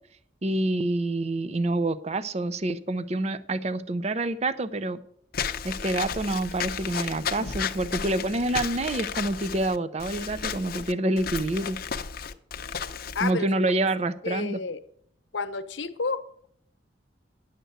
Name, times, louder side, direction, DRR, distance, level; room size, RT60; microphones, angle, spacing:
voice 1, 0.4-5.0 5.6-11.8 13.2-14.6, right 2 dB, 35° right, 14 dB, 0.5 m, -27 dB
Walk footsteps / Squeak, 5.3-13.3, left 7 dB, 50° left, 0.7 m, -33 dB
voice 2, 13.1-13.5 14.2-14.8 15.3-16.5, left 4 dB, 75° left, 10 dB, 0.9 m, -30 dB
10.0 x 6.7 x 8.0 m, 0.66 s
head